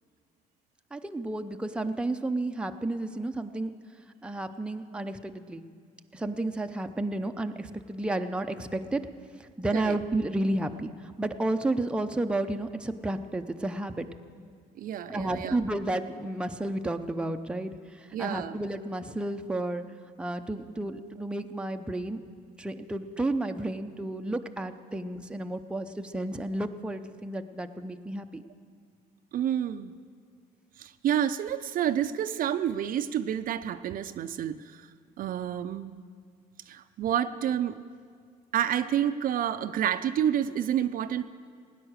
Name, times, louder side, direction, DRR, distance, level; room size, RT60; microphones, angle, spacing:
voice 1, 0.9-3.7 4.2-5.6 6.1-9.1 9.4-14.1 15.1-19.8 20.2-22.2 22.6-28.4, right 2 dB, 5° right, 6 dB, 0.6 m, -32 dB
voice 2, 14.8-15.6 18.1-18.6 29.3-29.9 30.8-34.9 35.2-35.9 36.7-37.8 38.5-41.2, right 10 dB, 55° right, 11 dB, 0.5 m, -29 dB
17.0 x 9.9 x 6.5 m, 2.1 s
cardioid pair, 110°, 17 cm